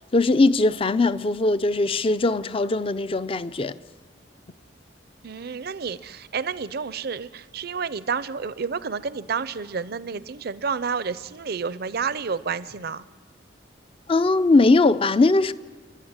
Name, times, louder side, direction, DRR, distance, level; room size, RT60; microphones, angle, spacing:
voice 1, 0.1-3.7 14.1-15.5, left 3 dB, 30° left, 0.5 m, -20 dB
voice 2, 5.2-13.0, right 5 dB, 55° right, 0.6 m, -30 dB
29.0 x 11.5 x 8.9 m
head